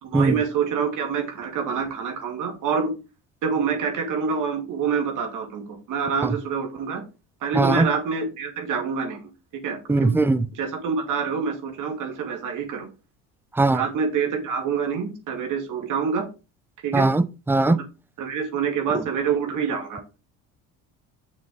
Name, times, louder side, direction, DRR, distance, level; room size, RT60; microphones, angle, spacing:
voice 1, 0.0-2.9 3.4-5.6 5.9-7.0 7.4-9.2 9.5-10.2 10.5-12.9 13.7-16.3 16.8-17.1 17.7-17.8 18.2-20.0, right 6 dB, 60° right, 2.5 m, -26 dB
voice 2, 7.5-7.9 9.9-10.5 13.6-13.8 16.9-17.8, right 2 dB, 5° right, 0.4 m, -20 dB
6.7 x 6.4 x 3.9 m
cardioid pair, 110°, 35 cm